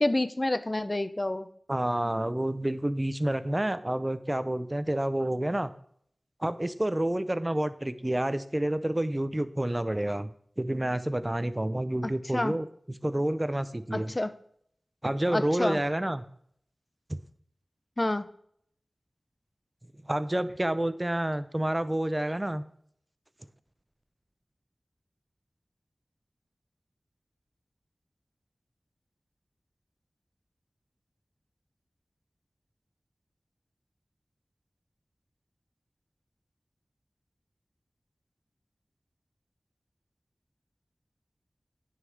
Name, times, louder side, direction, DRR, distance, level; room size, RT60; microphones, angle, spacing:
voice 1, 0.0-1.5 12.3-12.6 13.9-14.3 15.3-15.8 18.0-18.3, left 1 dB, 30° left, 13 dB, 0.6 m, -28 dB
voice 2, 1.7-5.7 6.4-10.3 10.6-12.7 13.0-14.1 15.0-16.2 17.1-17.2 20.1-22.6, right 1 dB, 25° right, 14 dB, 0.6 m, -29 dB
9.6 x 5.6 x 4.7 m, 0.65 s
wide cardioid pair, 50°, 0 cm